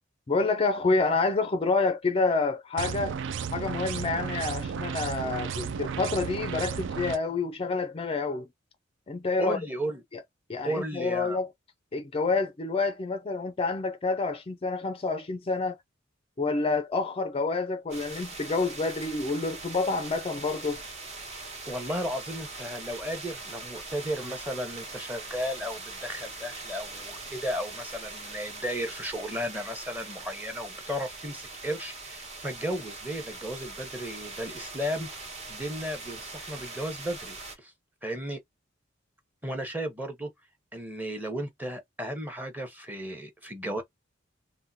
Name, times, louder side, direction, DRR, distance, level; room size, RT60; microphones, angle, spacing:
voice 1, 0.3-3.2 3.5-8.5 9.1-9.6 10.1-10.2 10.5-11.5 11.9-15.8 16.4-20.8, left 3 dB, 30° left, 0.4 m, -28 dB
sound 1, 2.8-7.2, right 6 dB, 65° right, 0.4 m, -33 dB
voice 2, 9.4-10.0 10.6-11.4 21.7-35.1 35.5-37.7 38.0-38.4 39.4-40.3 40.7-43.8, equal, 10° right, 0.9 m, -34 dB
sound 2, 17.9-37.5, right 3 dB, 35° right, 1.1 m, -42 dB
3.5 x 2.2 x 2.6 m
head